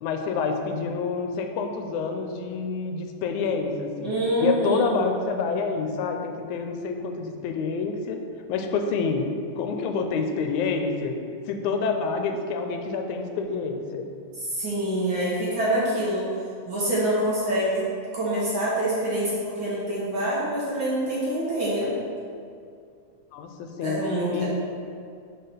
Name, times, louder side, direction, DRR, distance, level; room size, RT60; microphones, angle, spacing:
voice 1, 0.0-8.2 8.5-9.3 9.6-11.2 11.5-14.1 23.3-24.0 24.3-24.5, left 5 dB, 90° left, 5 dB, 2.0 m, -28 dB
voice 2, 4.0-5.0 14.4-16.2 16.7-17.8 18.1-21.9 23.8-24.5, right 1 dB, 55° right, -7 dB, 1.6 m, -26 dB
5.7 x 4.9 x 5.6 m, 2.3 s
omnidirectional pair, 3.3 m